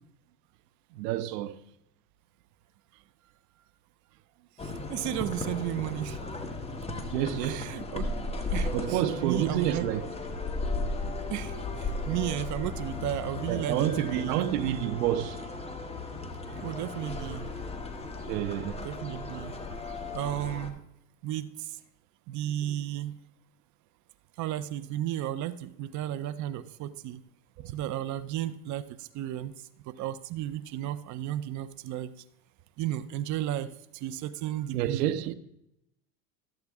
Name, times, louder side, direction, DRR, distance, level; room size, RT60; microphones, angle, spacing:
voice 1, 0.9-1.6 7.1-7.8 8.7-10.1 13.5-15.4 16.5-16.6 18.3-18.9 19.9-20.0 27.6-27.7 34.7-35.3, right 12 dB, 70° right, 0.9 m, -29 dB
sound 1, 4.6-20.7, left 2 dB, 10° left, 1.0 m, -36 dB
voice 2, 4.6-6.2 7.4-8.1 8.5-9.9 11.3-11.5 11.8-14.4 16.6-17.5 18.8-19.5 20.1-20.8 21.2-21.5 22.3-23.1 24.4-27.2 27.6-29.5 30.0-32.1 32.8-33.7 34.0-35.0, right 12 dB, 35° right, 0.6 m, -33 dB
13.0 x 8.0 x 3.6 m
supercardioid pair, 115°, 50 cm